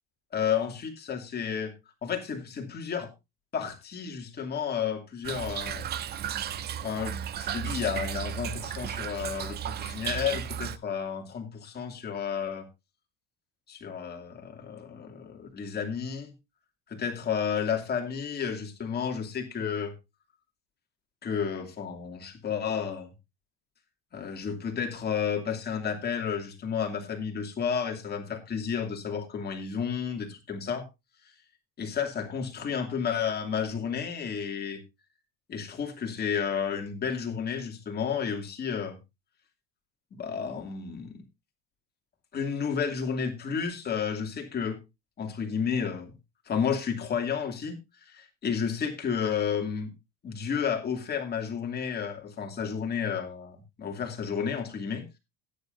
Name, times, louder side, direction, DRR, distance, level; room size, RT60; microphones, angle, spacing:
voice 1, 0.3-1.7 2.0-3.1 3.5-5.9 6.8-12.7 13.7-16.3 16.9-20.0 21.2-23.1 24.1-30.8 31.8-34.8 35.5-39.0 40.1-41.2 42.3-44.8 45.2-46.1 46.5-49.9 50.2-55.2, left 7 dB, 25° left, 3 dB, 2.6 m, -31 dB
Toilet flush / Trickle dribble, 5.2-10.8, right 9 dB, 25° right, 0.5 m, -34 dB
16.5 x 10.0 x 2.6 m, 0.23 s
cardioid pair, 155°, 38 cm